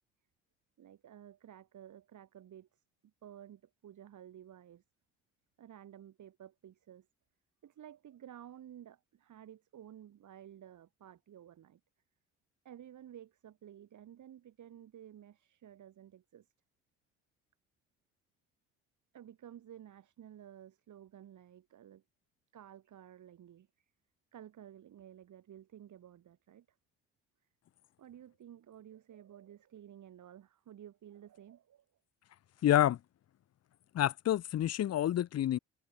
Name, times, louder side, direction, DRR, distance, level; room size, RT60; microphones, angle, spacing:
voice 1, 0.8-4.8 5.6-7.1 7.6-11.8 12.7-16.5 19.1-22.0 22.5-23.7 24.3-26.7 28.0-31.9, right 10 dB, 55° right, 5.2 m, -53 dB
voice 2, 32.6-33.0 33.9-35.6, left 12 dB, 45° left, 0.9 m, -28 dB
hypercardioid pair, 60°, 36 cm